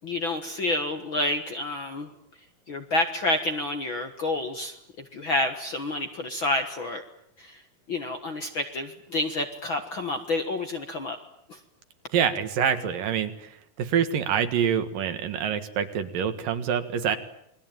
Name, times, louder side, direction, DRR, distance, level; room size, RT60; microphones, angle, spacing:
voice 1, 0.0-2.1 2.7-4.7 5.1-7.0 7.4-7.6 7.9-11.2 11.5-11.6, left 2 dB, 50° left, 6 dB, 1.7 m, -29 dB
voice 2, 12.1-13.5 13.8-17.2, right 8 dB, 70° right, 9 dB, 3.3 m, -26 dB
28.5 x 21.5 x 9.1 m, 0.73 s
omnidirectional pair, 4.1 m